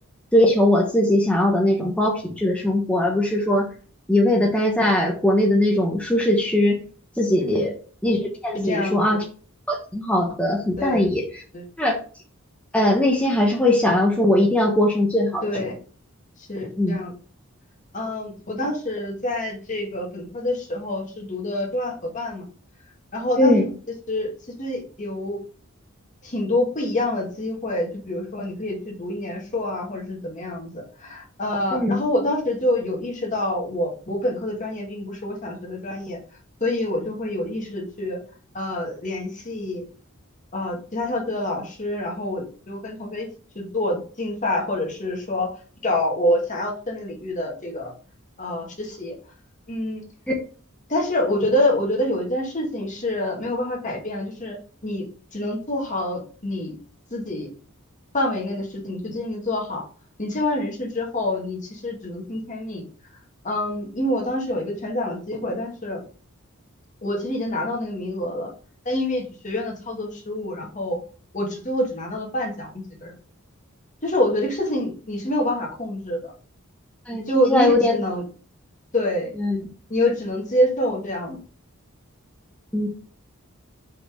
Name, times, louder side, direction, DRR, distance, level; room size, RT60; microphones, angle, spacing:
voice 1, 0.3-3.7 4.1-6.8 7.2-7.7 8.0-9.2 9.7-11.2 11.8-12.0 12.7-15.4 16.8-16.9 23.4-23.7 31.7-32.0 77.1-78.0 79.4-79.6 82.7-82.9, left 1 dB, 5° left, -1 dB, 1.0 m, -20 dB
voice 2, 8.5-9.0 10.8-11.0 11.5-11.7 15.4-15.7 16.5-17.1 17.9-22.5 23.1-23.7 24.1-24.3 24.6-25.4 26.2-36.2 36.6-38.2 38.5-39.8 40.5-43.3 43.6-45.5 45.8-47.9 48.4-49.1 49.7-50.0 50.9-54.6 54.8-55.0 55.3-56.7 57.1-57.5 58.1-59.8 60.2-62.8 63.4-66.0 67.0-68.5 68.9-71.0 71.3-73.1 74.0-76.3 77.3-78.2 78.9-79.3 79.9-81.4, left 1 dB, 35° left, 0 dB, 1.9 m, -26 dB
5.2 x 4.3 x 5.0 m, 0.39 s
head